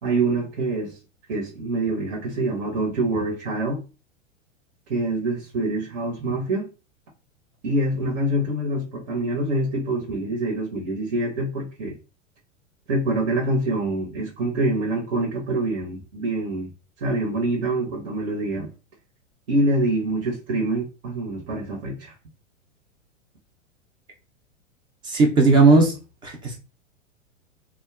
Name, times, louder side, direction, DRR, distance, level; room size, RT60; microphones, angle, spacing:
voice 1, 0.0-1.0 1.3-3.8 4.9-6.7 7.6-11.9 12.9-16.7 17.0-18.7 19.5-22.1, right 2 dB, 65° right, 0.9 m, -25 dB
voice 2, 25.0-25.9 26.2-26.6, right 3 dB, 15° right, 0.3 m, -16 dB
2.6 x 2.2 x 2.3 m
hypercardioid pair, 110°, 37 cm